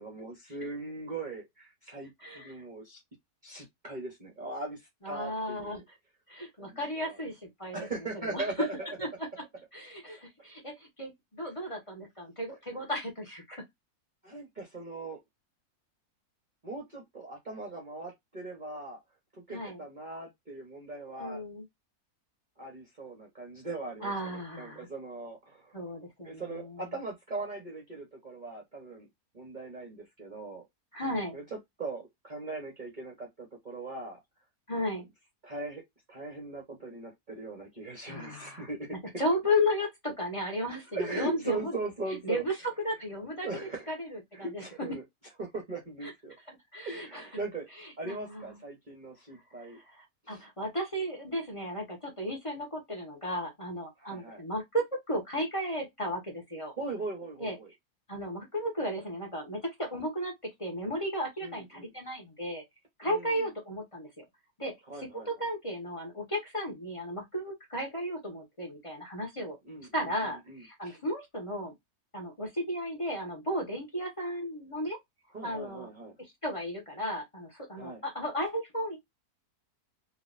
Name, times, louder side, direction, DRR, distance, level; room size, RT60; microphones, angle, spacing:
voice 1, 0.0-3.0 3.4-5.8 6.6-7.2 7.7-8.9 14.2-15.2 16.6-19.0 19.5-21.4 22.6-25.8 26.2-29.1 29.3-30.6 31.3-34.2 34.9-35.0 35.4-35.8 36.1-39.0 40.9-42.4 43.4-43.9 44.3-45.0 45.4-46.4 46.8-47.7 48.0-49.8 50.2-50.4 54.0-54.4 56.8-57.7 61.4-61.9 63.0-63.5 64.9-65.3 69.7-71.0 75.3-76.1 77.8-78.0, right 3 dB, 35° right, 0.9 m, -40 dB
voice 2, 2.2-2.5 5.0-5.8 6.3-7.9 8.2-8.5 9.0-9.1 9.7-13.6 19.5-19.8 21.2-21.6 24.0-24.9 25.7-26.8 30.9-31.4 34.7-35.1 38.1-41.8 42.2-42.6 42.8-43.5 43.9-44.6 46.0-46.1 46.5-47.3 47.8-48.6 49.6-56.7 57.4-57.6 58.1-62.6 63.0-64.2 64.6-69.6 69.9-71.7 72.1-75.0 75.4-75.9 76.2-79.0, equal, 20° left, 1.2 m, -34 dB
3.9 x 2.6 x 2.5 m
omnidirectional pair, 1.6 m